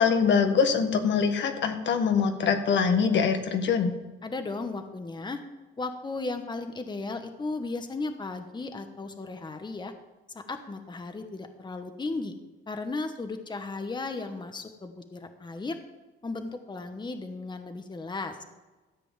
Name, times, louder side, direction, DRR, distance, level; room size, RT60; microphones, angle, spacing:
voice 1, 0.0-3.9, left 6 dB, 65° left, 6 dB, 1.6 m, -23 dB
voice 2, 4.2-5.4 5.8-9.9 10.5-12.3 12.7-15.8 16.2-18.4, left 3 dB, 20° left, 7 dB, 1.2 m, -35 dB
13.5 x 5.1 x 8.7 m, 1.2 s
cardioid pair, 90°, 20 cm